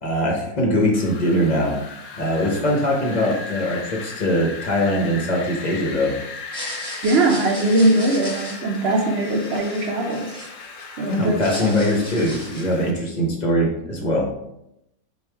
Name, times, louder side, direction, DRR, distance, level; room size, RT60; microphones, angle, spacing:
voice 1, 0.0-1.7 2.1-6.1 11.1-14.3, equal, 45° left, -1 dB, 0.6 m, -21 dB
Wind, 0.9-12.9, left 4 dB, 70° left, 0.9 m, -37 dB
sound 1, 6.4-10.8 11.2-12.8, equal, 5° left, 0.9 m, -36 dB
voice 2, 7.0-10.4 11.0-11.9, right 2 dB, 65° right, 1 dB, 0.7 m, -21 dB
4.5 x 2.4 x 3.3 m, 0.83 s
omnidirectional pair, 1.6 m